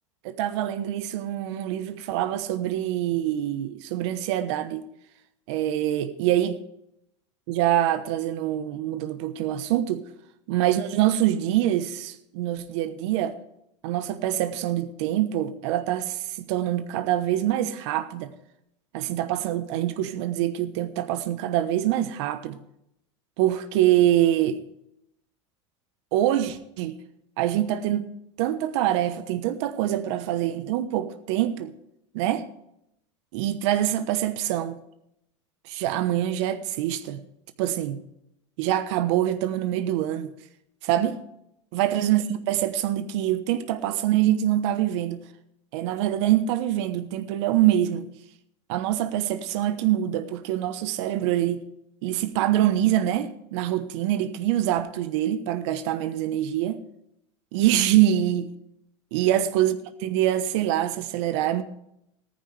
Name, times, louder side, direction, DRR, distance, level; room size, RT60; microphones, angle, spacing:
voice 1, 0.2-4.9 5.5-6.6 7.5-10.1 10.5-13.4 13.8-18.3 18.9-22.6 23.4-24.6 26.1-27.0 27.4-28.1 28.4-31.7 32.1-32.5 33.3-34.8 35.7-37.2 37.6-38.0 38.6-40.3 40.8-41.2 41.7-45.2 45.7-48.1 48.7-51.6 52.0-56.8 57.5-58.5 59.1-61.6, right 12 dB, 70° right, 1.1 m, -25 dB
14.5 x 14.0 x 3.4 m
supercardioid pair, 105°, 15 cm